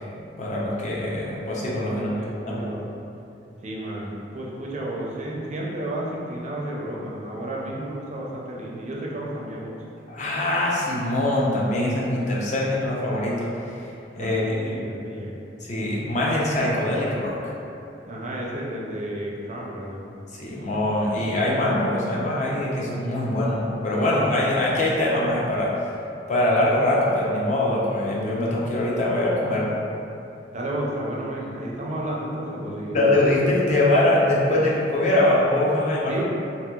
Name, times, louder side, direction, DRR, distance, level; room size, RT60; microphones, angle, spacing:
voice 1, 0.4-2.1 2.5-2.7 10.1-13.5 14.2-14.4 15.6-17.4 20.3-25.7 26.3-29.8 32.9-36.1, left 1 dB, 40° left, -5 dB, 0.5 m, -23 dB
voice 2, 1.9-2.8 3.6-9.8 14.2-15.4 18.0-20.0 30.5-33.0 36.1-36.2, right 1 dB, 40° right, -4 dB, 0.5 m, -32 dB
2.9 x 2.8 x 2.3 m, 2.7 s
head